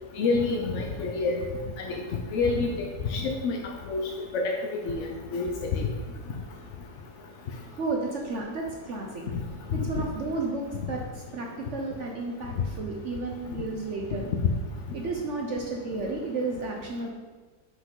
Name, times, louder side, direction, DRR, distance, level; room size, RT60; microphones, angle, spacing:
voice 1, 0.1-1.4 1.8-1.9 2.3-2.7 3.1-3.6 3.9-4.0 4.3-4.5 4.8-5.9 9.7-10.0, left 4 dB, 65° left, 1 dB, 0.7 m, -27 dB
voice 2, 7.7-9.2 9.7-14.3 14.9-17.1, right 3 dB, 60° right, 0 dB, 0.8 m, -32 dB
6.2 x 5.3 x 3.8 m, 1.3 s
omnidirectional pair, 1.9 m